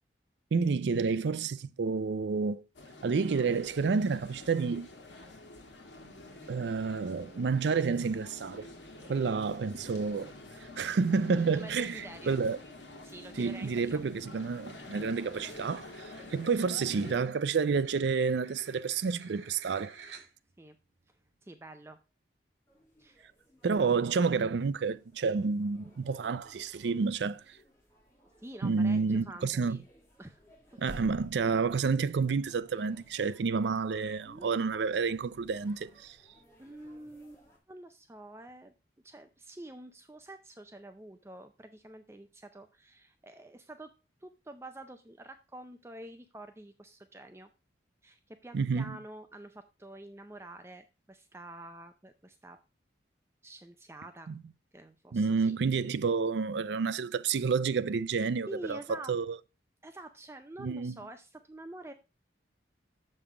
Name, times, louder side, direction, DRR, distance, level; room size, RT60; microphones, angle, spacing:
voice 1, 0.5-2.6 3.0-4.9 6.5-8.7 9.1-10.3 10.6-12.6 13.4-15.9 16.3-19.9 23.6-27.6 28.6-29.8 30.8-36.2 48.5-49.0 54.3-54.4 55.1-59.4 60.6-61.0, right 5 dB, 70° right, 0.4 m, -29 dB
sound 1, 2.7-17.2, left 2 dB, 80° left, 1.5 m, -48 dB
voice 2, 11.5-12.4 13.0-14.0 16.2-16.5 20.6-20.8 21.1-21.2 21.4-22.0 23.0-23.2 28.4-29.9 30.2-30.4 34.3-34.5 36.6-38.7 39.0-43.9 44.2-47.5 48.0-52.6 53.4-54.3 54.7-55.6 58.4-59.1 59.8-61.9, right 1 dB, 15° right, 0.5 m, -48 dB
sound 2, 14.8-20.6, right 5 dB, 85° right, 1.6 m, -52 dB
sound 3, 22.7-37.6, equal, 15° left, 2.3 m, -57 dB
7.0 x 5.5 x 4.8 m
head